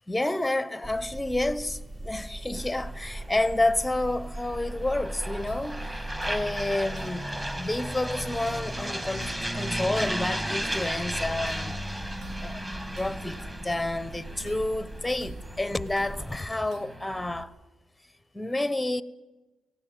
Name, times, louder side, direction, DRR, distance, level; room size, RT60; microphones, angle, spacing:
voice 1, 0.1-12.6 13.0-17.5 18.3-19.0, left 2 dB, 10° left, 0.8 m, -30 dB
sound 1, 0.8-16.4, right 1 dB, 35° right, 1.9 m, -40 dB
sound 2, 2.6-17.4, equal, 15° right, 2.2 m, -36 dB
sound 3, 5.5-17.4, right 2 dB, 75° right, 1.7 m, -49 dB
18.0 x 16.0 x 9.1 m
cardioid pair, 90°, 0 cm